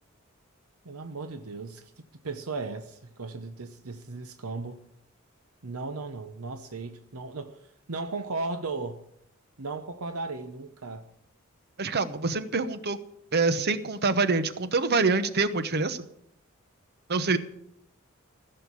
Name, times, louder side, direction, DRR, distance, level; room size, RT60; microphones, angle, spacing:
voice 1, 0.8-1.9 2.2-4.8 5.6-7.6 7.9-9.0 9.6-11.1, right 3 dB, 85° right, 0.9 m, -36 dB
voice 2, 11.8-13.0 13.3-16.0 17.1-17.4, right 3 dB, 50° right, 1.0 m, -25 dB
15.5 x 6.7 x 9.8 m
head